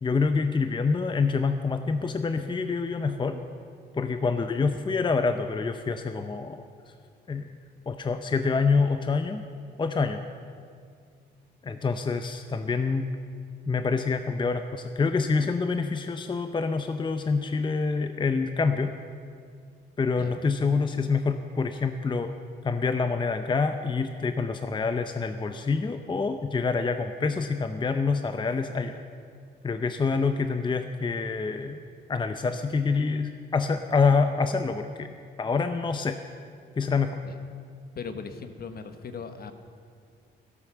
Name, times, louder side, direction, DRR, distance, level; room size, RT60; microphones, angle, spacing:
voice 1, 0.0-3.4 3.9-6.6 7.3-7.5 7.9-9.4 9.8-10.2 11.6-13.1 13.7-19.0 20.0-22.3 22.6-29.0 29.6-31.8 32.1-36.2 36.8-37.2, left 4 dB, 25° left, 8 dB, 0.7 m, -26 dB
voice 2, 37.9-39.5, left 5 dB, 50° left, 8 dB, 1.2 m, -38 dB
12.5 x 12.0 x 6.9 m, 2.2 s
cardioid pair, 90°, 20 cm